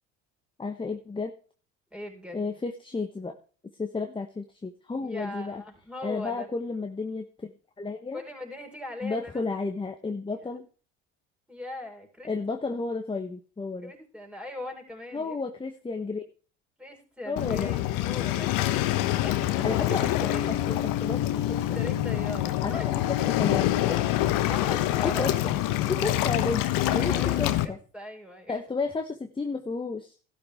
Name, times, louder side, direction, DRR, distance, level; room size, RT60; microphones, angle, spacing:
voice 1, 0.6-1.3 2.3-3.3 3.8-5.6 6.0-7.5 7.8-8.2 9.0-10.7 12.2-13.9 15.1-16.2 17.3-17.7 19.6-20.3 20.7-21.6 22.6-22.7 23.4-23.6 25.0-25.6 25.9-26.6 26.9-27.8 28.5-30.1, left 3 dB, 15° left, 6 dB, 1.1 m, -32 dB
voice 2, 1.9-2.5 4.9-6.5 8.1-9.5 10.3-10.5 11.5-12.3 13.8-15.4 16.8-20.6 21.5-22.9 23.2-23.6 23.9-24.0 24.4-25.4 26.5-27.5 27.9-28.6, left 1 dB, 5° right, 2 dB, 4.9 m, -40 dB
Waves surf, 17.4-27.6, left 14 dB, 65° left, 1.1 m, -26 dB
13.0 x 12.0 x 3.6 m, 0.39 s
hypercardioid pair, 75°, 35 cm